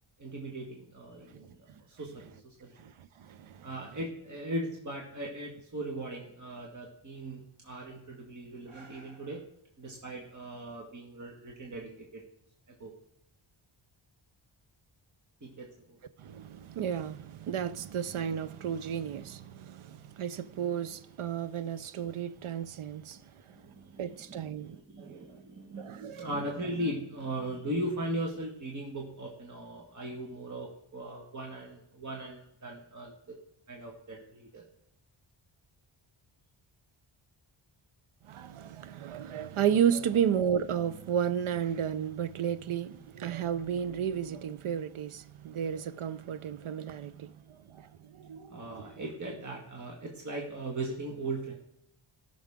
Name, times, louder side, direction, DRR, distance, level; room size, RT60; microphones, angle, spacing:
voice 1, 0.2-2.8 3.6-9.4 9.8-12.2 12.8-12.9 15.4-16.0 23.5-33.4 33.7-34.6 48.5-51.5, right 1 dB, 35° right, 1.8 m, -39 dB
voice 2, 2.8-3.7 16.2-23.6 24.0-25.3 25.8-26.3 38.2-48.9, right 8 dB, 80° right, 0.8 m, -33 dB
18.0 x 6.3 x 3.7 m
wide cardioid pair, 130°, 49 cm